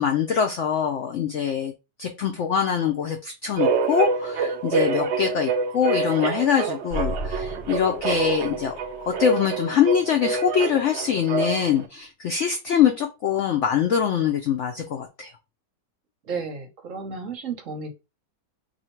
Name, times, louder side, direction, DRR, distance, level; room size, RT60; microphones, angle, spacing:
voice 1, 0.0-1.7 2.0-8.7 9.1-15.3, left 8 dB, 90° left, 4 dB, 0.6 m, -23 dB
sound 1, 3.6-11.8, right 5 dB, 80° right, 0.6 m, -27 dB
sound 2, 6.9-9.5 9.8-9.9, equal, 60° left, 1.7 m, -35 dB
voice 2, 16.2-17.9, right 5 dB, 60° right, 4 dB, 1.0 m, -33 dB
2.7 x 2.7 x 4.3 m, 0.27 s
omnidirectional pair, 1.8 m